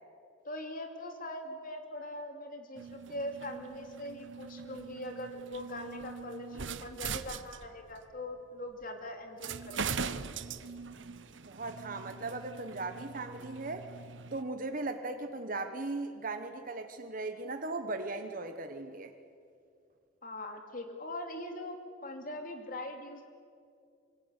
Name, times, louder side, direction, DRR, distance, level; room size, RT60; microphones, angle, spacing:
voice 1, 0.4-10.2 20.2-21.8 22.0-23.2, left 1 dB, 45° left, 5 dB, 2.8 m, -42 dB
sound 1, 2.7-8.0 8.8-8.9 9.4-14.4, right 6 dB, 75° right, 0.9 m, -41 dB
voice 2, 11.5-13.9 14.3-19.1, right 3 dB, 45° right, 7 dB, 1.2 m, -38 dB
26.0 x 23.0 x 8.2 m, 2.4 s
head